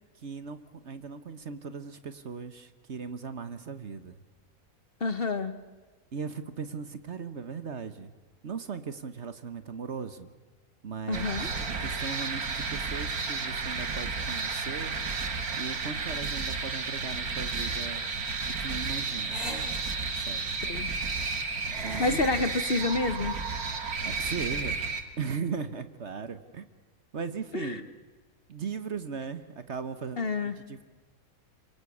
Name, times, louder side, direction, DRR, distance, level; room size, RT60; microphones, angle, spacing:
voice 1, 0.2-4.2 6.1-8.1 8.4-10.3 10.8-14.9 15.5-18.1 18.6-19.4 20.1-20.6 21.8-22.2 24.0-24.8 25.2-26.7 27.1-27.9 28.5-30.8, right 5 dB, 50° right, 11 dB, 1.4 m, -38 dB
voice 2, 5.0-5.6 11.1-11.5 20.6-20.9 22.0-23.3 27.5-27.8 30.2-30.6, left 3 dB, 45° left, 11 dB, 1.3 m, -28 dB
sound 1, 11.1-25.0, right 4 dB, 90° right, 2.3 m, -32 dB
sound 2, 16.8-22.1, equal, ahead, 6.0 m, -44 dB
26.0 x 24.5 x 8.5 m, 1.3 s
omnidirectional pair, 1.5 m